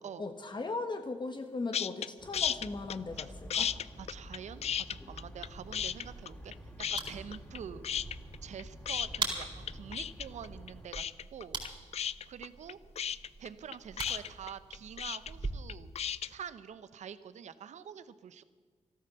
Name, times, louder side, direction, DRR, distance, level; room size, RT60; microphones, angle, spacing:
voice 1, 0.2-3.7, left 3 dB, 40° left, 7 dB, 1.3 m, -38 dB
sound 1, 1.7-2.1 2.3-3.2 3.5-5.5 5.7-6.5 6.8-7.6 7.8-16.3, left 9 dB, 60° left, 0.4 m, -34 dB
sound 2, 2.2-10.9, equal, 10° left, 3.1 m, -49 dB
voice 2, 4.0-6.5 6.9-7.9 8.4-11.6 12.3-12.8 13.4-15.9 16.2-18.4, right 8 dB, 75° right, 14 dB, 0.8 m, -46 dB
sound 3, 5.5-15.5, right 3 dB, 40° right, 4.4 m, -43 dB
14.0 x 13.0 x 6.8 m, 1.5 s
cardioid pair, 60°, 12 cm